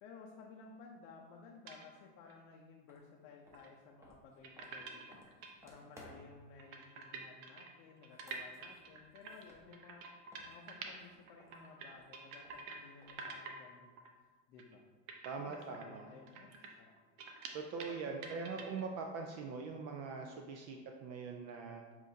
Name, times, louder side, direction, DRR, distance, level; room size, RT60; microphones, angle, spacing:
voice 1, 0.0-5.4 5.6-10.0 10.4-14.0 14.5-14.9 15.4-16.9 17.9-18.8, left 4 dB, 80° left, -1 dB, 0.7 m, -57 dB
sound 1, 1.7-1.9 2.3-2.4 3.5-3.7 4.4-5.5 6.0-6.1 6.3-6.4 6.6-11.0 11.3-12.8 13.1-13.6 14.0-14.1 14.6-14.7 15.1-18.0 18.2-18.8, right 4 dB, 70° right, 0.8 m, -48 dB
sound 2, 2.9-3.0 3.4-6.5 8.0-10.0 10.3-13.4, equal, 5° right, 0.8 m, -61 dB
voice 2, 15.2-16.1 17.5-21.8, right 4 dB, 45° right, 3 dB, 0.4 m, -42 dB
7.2 x 2.6 x 2.7 m, 1.4 s
supercardioid pair, 110°, 40 cm